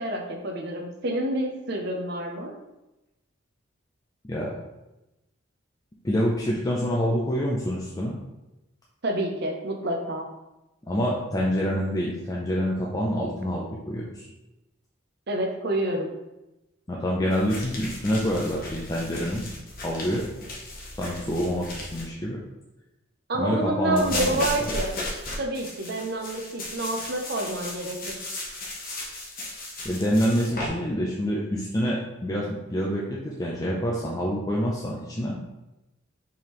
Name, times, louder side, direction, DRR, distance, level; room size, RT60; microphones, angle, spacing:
voice 1, 0.0-2.5 9.0-10.3 15.3-16.1 23.3-24.9 25.4-28.3, right 1 dB, 55° right, 3 dB, 0.6 m, -28 dB
voice 2, 6.0-8.2 10.9-14.3 16.9-19.5 19.8-20.3 21.0-22.4 23.4-24.7 29.8-35.4, equal, 20° left, -4 dB, 0.5 m, -27 dB
sound 1, 17.3-22.1 24.0-30.7, left 2 dB, 45° left, 1.0 m, -36 dB
4.6 x 3.5 x 3.1 m, 0.99 s
head